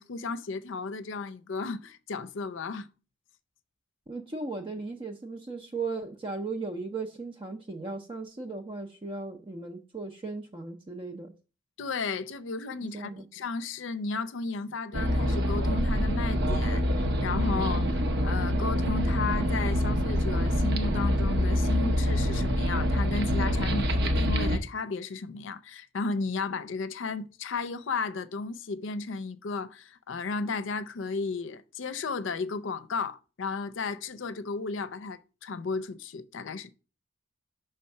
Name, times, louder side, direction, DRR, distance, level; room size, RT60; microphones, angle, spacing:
voice 1, 0.0-2.9 11.8-16.8 17.2-36.7, left 4 dB, 80° left, 0.5 m, -34 dB
voice 2, 4.1-11.3 12.9-13.3, right 3 dB, 25° right, 0.5 m, -37 dB
sound 1, 14.9-24.6, equal, 60° right, 0.8 m, -26 dB
5.7 x 3.4 x 5.3 m
head